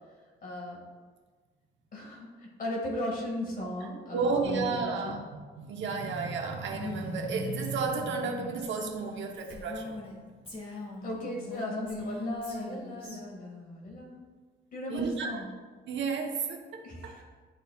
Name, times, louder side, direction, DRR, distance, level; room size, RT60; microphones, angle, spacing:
voice 1, 0.4-0.8 1.9-5.2 11.0-14.2 14.7-15.5 16.8-17.2, left 1 dB, 45° left, -2 dB, 2.0 m, -37 dB
voice 2, 4.1-10.0 14.9-15.4 15.9-17.1, right 4 dB, 70° right, 2 dB, 1.1 m, -32 dB
Female speech woman speaking, 6.7-10.1 10.5-13.2, left 2 dB, 30° left, 2.0 m, -42 dB
11.5 x 4.1 x 2.4 m, 1.4 s
cardioid pair, 90°, 20 cm